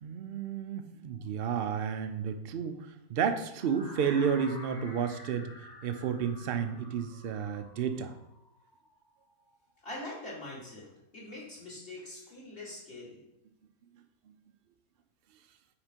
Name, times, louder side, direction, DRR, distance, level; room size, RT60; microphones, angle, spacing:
voice 1, 0.0-8.1, right 7 dB, 65° right, 8 dB, 0.6 m, -32 dB
sound 1, 3.5-9.5, left 1 dB, 20° left, 0.8 m, -50 dB
voice 2, 9.8-13.2, left 1 dB, 40° left, -5 dB, 2.1 m, -43 dB
5.9 x 4.2 x 5.1 m, 0.87 s
omnidirectional pair, 1.6 m